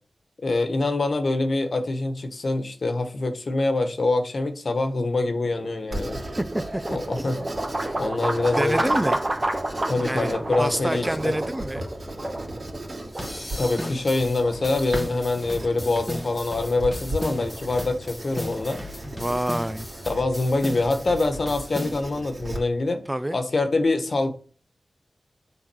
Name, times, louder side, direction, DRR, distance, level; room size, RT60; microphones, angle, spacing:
voice 1, 0.4-6.2 6.9-7.4 8.0-8.9 9.9-11.4 13.6-18.8 20.0-23.0 23.3-24.3, left 2 dB, 65° left, 1.3 m, -25 dB
sound 1, 5.3-19.3, right 1 dB, 30° right, 1.3 m, -32 dB
Writing, 5.9-22.6, right 1 dB, 55° right, 2.8 m, -37 dB
voice 2, 7.1-7.5 8.6-9.2 10.0-11.9 19.0-19.9 23.1-23.4, right 1 dB, 15° right, 0.5 m, -28 dB
sound 2, 13.1-22.0, left 1 dB, 10° left, 1.6 m, -36 dB
7.4 x 3.9 x 6.2 m
cardioid pair, 50°, 0 cm